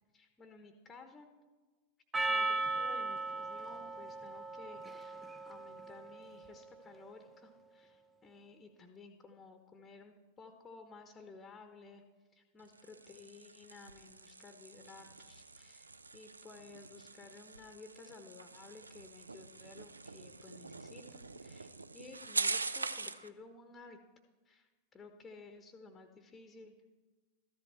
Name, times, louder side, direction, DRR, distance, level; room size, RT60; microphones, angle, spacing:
voice 1, 0.1-1.3 2.3-5.2 5.5-12.0 12.3-24.0 24.4-26.7, left 4 dB, 15° left, 6 dB, 1.0 m, -55 dB
Percussion, 2.1-6.7, right 3 dB, 15° right, 0.6 m, -37 dB
sound 1, 12.6-23.3, right 3 dB, 80° right, 0.4 m, -43 dB
13.5 x 11.0 x 4.2 m, 1.3 s
figure-of-eight pair, 90°, 0 cm